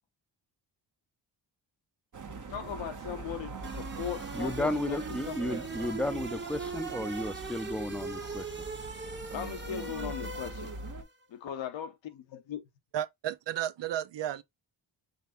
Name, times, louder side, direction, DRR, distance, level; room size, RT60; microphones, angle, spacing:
sound 1, 2.1-11.0, right 3 dB, 40° right, 1.2 m, -42 dB
voice 1, 2.5-5.0 5.3-5.6 9.3-10.7 11.3-12.6, left 9 dB, 80° left, 0.9 m, -38 dB
sound 2, 3.6-11.0, right 4 dB, 25° right, 1.2 m, -40 dB
voice 2, 4.3-8.7, left 1 dB, ahead, 0.6 m, -33 dB
voice 3, 12.9-14.4, right 11 dB, 70° right, 0.7 m, -33 dB
5.3 x 3.5 x 2.6 m
cardioid pair, 65°, 45 cm